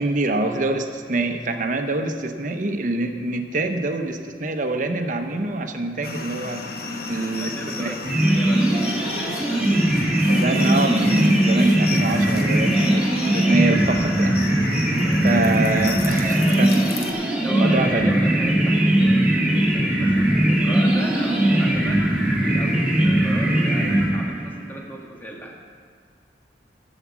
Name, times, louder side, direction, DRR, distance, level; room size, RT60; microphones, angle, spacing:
voice 1, 0.0-6.7 7.1-7.9 10.3-14.4 15.2-16.7 17.5-18.2 20.3-20.5, right 2 dB, 45° right, 6 dB, 0.8 m, -25 dB
sound 1, 6.0-17.1, left 3 dB, 60° left, 1.0 m, -33 dB
voice 2, 6.8-8.0 8.2-9.6 16.0-16.7 17.4-19.1 19.7-22.0 22.4-25.6, equal, 10° left, -2 dB, 1.5 m, -36 dB
sound 2, 8.0-24.6, right 1 dB, 5° right, 1.9 m, -20 dB
12.0 x 7.3 x 7.3 m, 2.2 s
head